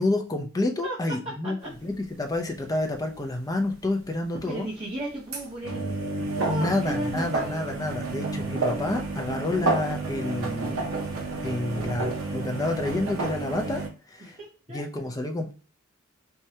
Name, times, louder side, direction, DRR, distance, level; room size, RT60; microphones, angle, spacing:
voice 1, 0.0-1.6 1.8-4.7 6.5-10.9 11.4-13.8 14.1-14.4 14.7-15.5, left 2 dB, 15° left, 4 dB, 0.5 m, -29 dB
sound 1, 2.0-2.1 2.3-2.6 2.9-3.0 3.2-3.3 5.1-13.9, right 3 dB, 75° right, 0.8 m, -30 dB
voice 2, 4.4-7.6 14.2-14.8, right 1 dB, 30° right, -7 dB, 1.0 m, -35 dB
4.6 x 2.2 x 2.8 m, 0.34 s
head